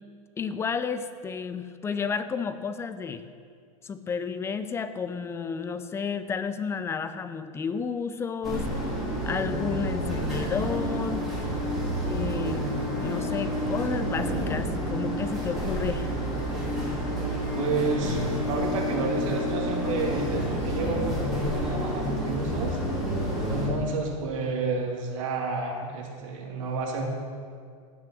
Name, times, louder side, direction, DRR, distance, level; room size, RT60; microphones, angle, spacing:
voice 1, 0.4-3.2 3.8-8.7 9.3-11.2 12.1-12.7 13.0-16.1, left 6 dB, 15° left, 11 dB, 0.5 m, -31 dB
sound 1, 8.4-23.7, equal, ahead, 3.7 m, -29 dB
voice 2, 17.5-22.8 23.5-27.0, right 3 dB, 65° right, 1 dB, 2.2 m, -30 dB
16.0 x 6.1 x 6.1 m, 2.2 s
supercardioid pair, 140°, 18 cm